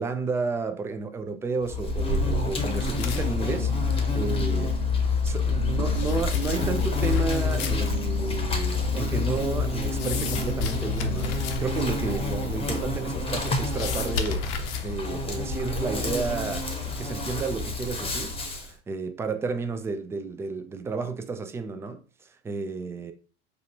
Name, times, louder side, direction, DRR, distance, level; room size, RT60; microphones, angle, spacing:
voice 1, 0.0-4.7 5.2-14.4 14.8-23.1, right 4 dB, 10° right, 0.3 m, -32 dB
Insect, 1.7-18.7, left 3 dB, 15° left, 0.9 m, -28 dB
Organ, 2.3-12.6, right 2 dB, 65° right, 0.9 m, -41 dB
sound 1, 2.7-15.8, left 5 dB, 50° left, 0.6 m, -37 dB
5.1 x 2.3 x 2.7 m
figure-of-eight pair, 70°, 34 cm